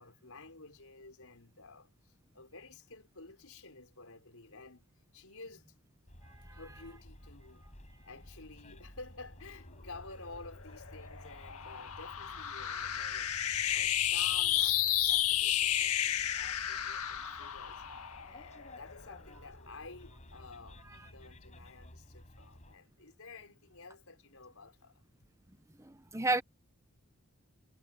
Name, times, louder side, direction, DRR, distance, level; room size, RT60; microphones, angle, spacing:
voice 1, 0.0-4.8 5.1-5.8 6.5-7.6 8.0-17.8 18.3-25.0, left 3 dB, 70° left, 5.9 m, -52 dB
Bus, 6.1-22.8, left 1 dB, 30° left, 5.6 m, -54 dB
sound 1, 10.6-19.2, left 11 dB, 85° left, 1.9 m, -32 dB
voice 2, 25.8-26.4, right 2 dB, 15° right, 1.1 m, -31 dB
head